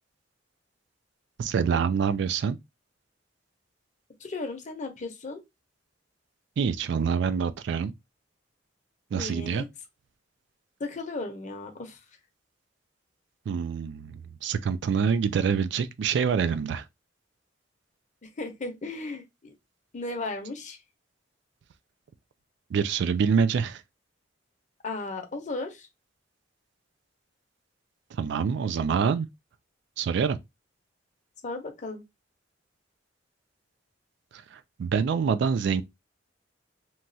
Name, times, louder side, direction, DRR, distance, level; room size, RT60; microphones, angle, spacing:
voice 1, 1.4-2.6 6.6-7.9 9.1-9.7 13.5-16.8 22.7-23.8 28.1-29.3 30.0-30.4 34.3-35.8, right 6 dB, 65° right, 0.3 m, -26 dB
voice 2, 4.2-5.4 9.1-9.7 10.8-12.0 18.2-19.5 19.9-20.8 24.8-25.9 31.4-32.0, left 3 dB, 40° left, 0.7 m, -35 dB
3.0 x 2.3 x 2.6 m
head